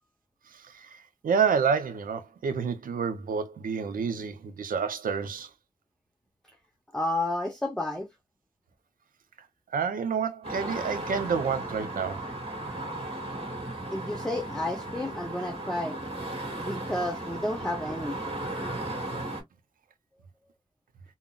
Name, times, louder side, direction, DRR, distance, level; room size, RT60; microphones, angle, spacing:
voice 1, 0.5-5.5 9.7-12.3, right 6 dB, 90° right, 0.5 m, -29 dB
voice 2, 6.9-8.1 13.9-16.0 16.6-18.2, left 1 dB, 5° left, 0.8 m, -31 dB
sound 1, 10.4-19.4, right 1 dB, 45° right, 1.9 m, -36 dB
3.7 x 2.0 x 2.3 m
cardioid pair, 55°, 14 cm